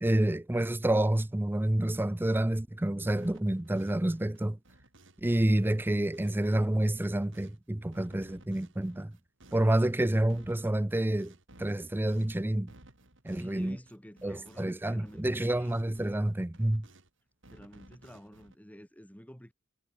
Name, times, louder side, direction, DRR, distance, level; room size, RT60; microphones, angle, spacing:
voice 1, 0.0-4.6 5.2-9.1 9.5-11.3 11.6-12.7 13.2-13.8 14.2-16.9, right 1 dB, 10° right, 0.5 m, -28 dB
sound 1, 3.2-5.3 5.5-7.6 7.9-14.8 15.0-17.1 17.4-18.6, right 1 dB, 60° right, 5.4 m, -58 dB
voice 2, 13.3-15.8 17.5-19.5, equal, 5° left, 2.6 m, -50 dB
head